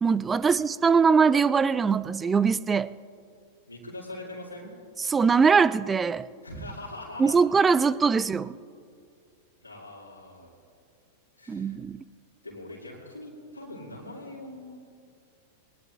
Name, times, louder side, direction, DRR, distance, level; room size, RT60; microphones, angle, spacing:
voice 1, 0.0-2.9 5.1-6.3 7.2-8.5 11.5-12.0, right 5 dB, 15° right, 0.4 m, -22 dB
voice 2, 3.7-4.7 6.4-7.4 9.6-10.5 11.4-11.8 12.4-14.8, left 1 dB, 90° left, 2.6 m, -42 dB
22.5 x 19.5 x 2.5 m
figure-of-eight pair, 95°, 0 cm